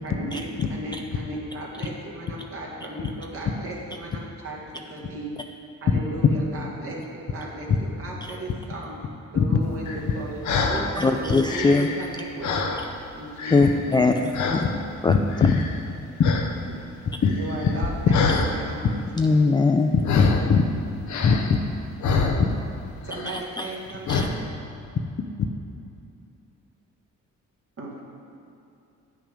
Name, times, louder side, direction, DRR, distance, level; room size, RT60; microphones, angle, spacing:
voice 1, 0.0-5.3 5.8-11.7 12.0-12.7 13.1-14.1 17.3-19.2 23.0-24.4 27.8-28.0, right 1 dB, 50° right, -3 dB, 1.9 m, -36 dB
sound 1, 9.9-10.9 11.3-13.1 13.4-14.0 14.3-14.8 15.3-15.9 16.2-16.5 16.8-18.5 20.0-20.6 21.1-22.8 23.1-23.4 24.1-24.2, left 4 dB, 70° left, 0.9 m, -26 dB
voice 2, 11.0-11.9 13.5-14.6 15.0-15.1 19.2-19.9 23.3-23.7 24.1-24.3, left 3 dB, 15° left, 4 dB, 0.3 m, -21 dB
voice 3, 15.1-15.5 16.2-16.3 17.2-17.3 20.2-20.6 21.2-21.6, left 6 dB, 45° left, 5 dB, 0.6 m, -20 dB
8.5 x 6.0 x 5.2 m, 2.6 s
cardioid pair, 90°, 30 cm